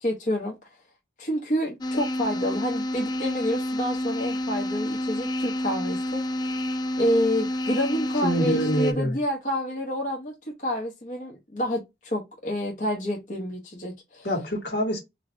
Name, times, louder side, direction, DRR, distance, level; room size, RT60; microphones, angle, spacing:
voice 1, 0.0-0.5 1.2-6.5 7.0-10.3 10.6-14.3, equal, 45° left, 0.9 m, -28 dB
sound 1, 1.8-8.9, left 1 dB, 25° left, 0.3 m, -29 dB
voice 2, 8.2-9.2 14.2-15.0, equal, 75° left, 1.6 m, -25 dB
3.9 x 2.7 x 3.1 m
head